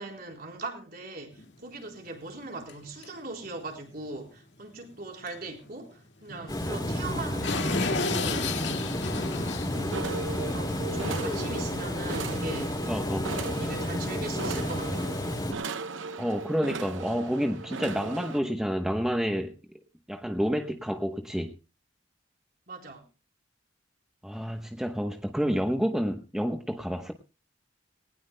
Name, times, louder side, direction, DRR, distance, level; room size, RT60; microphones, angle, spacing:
voice 1, 0.0-8.7 10.3-12.8 13.5-15.1 22.7-23.0, right 2 dB, 50° right, 4.2 m, -40 dB
sound 1, 1.3-1.4 1.9-2.0 2.7-2.8 3.0-3.1 3.4-3.6 5.3-5.4 5.6-5.7 6.3-11.6, left 3 dB, 70° left, 2.1 m, -34 dB
Water, 6.5-15.5, left 1 dB, 20° left, 3.0 m, -31 dB
sound 2, 9.7-18.4, right 4 dB, 85° right, 0.9 m, -37 dB
voice 2, 12.9-13.3 16.2-19.5 20.1-21.5 24.2-27.1, equal, 5° right, 1.0 m, -29 dB
20.0 x 19.0 x 2.2 m
head